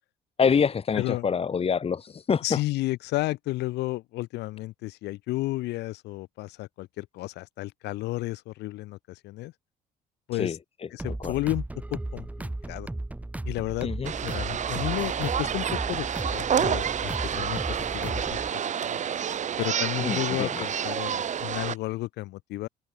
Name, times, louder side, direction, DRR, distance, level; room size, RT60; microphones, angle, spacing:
voice 1, 0.4-2.6 10.3-10.6 11.2-11.3 13.8-14.1 20.0-20.7, left 6 dB, 35° left, 3.1 m, -26 dB
voice 2, 0.9-1.3 2.4-9.5 10.3-10.6 10.9-12.9 13.4-13.9 14.2-19.0 19.6-22.7, left 18 dB, 85° left, 3.0 m, -32 dB
sound 1, 11.0-18.5, right 2 dB, 10° right, 1.7 m, -35 dB
sound 2, 14.1-21.8, right 8 dB, 45° right, 3.4 m, -29 dB
cardioid pair, 110°, 17 cm